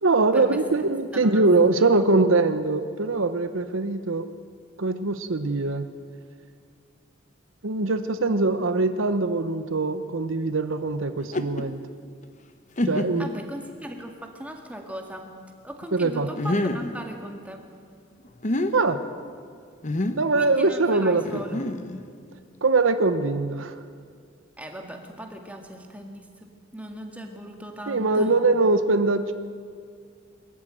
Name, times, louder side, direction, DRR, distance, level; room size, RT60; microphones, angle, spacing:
voice 1, 0.0-4.3 4.8-5.9 7.6-11.8 12.8-13.3 15.9-16.3 18.7-19.0 20.2-21.2 21.5-21.6 22.6-23.8 27.9-29.3, right 3 dB, 80° right, 10 dB, 0.9 m, -22 dB
voice 2, 1.1-2.0 13.2-15.3 15.6-17.7 20.3-21.7 24.6-28.4, equal, 5° right, 3 dB, 2.1 m, -38 dB
sound 1, 11.2-11.6 12.2-12.3 12.8-13.3 14.0-14.1 16.4-16.9 18.2-18.7 19.8-20.3 21.2-22.1, left 1 dB, 40° left, 1.0 m, -27 dB
22.0 x 14.0 x 9.1 m, 2.2 s
head